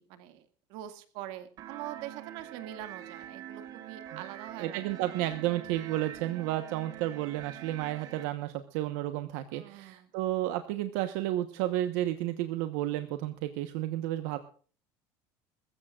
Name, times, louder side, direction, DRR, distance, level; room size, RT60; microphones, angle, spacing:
voice 1, 0.0-5.2 9.5-10.1, right 12 dB, 65° right, 10 dB, 2.0 m, -44 dB
sound 1, 1.6-8.2, right 12 dB, 40° right, 1.3 m, -45 dB
voice 2, 4.6-14.4, right 14 dB, 85° right, 9 dB, 1.1 m, -32 dB
22.0 x 14.5 x 2.4 m, 0.41 s
cardioid pair, 175°, 9 cm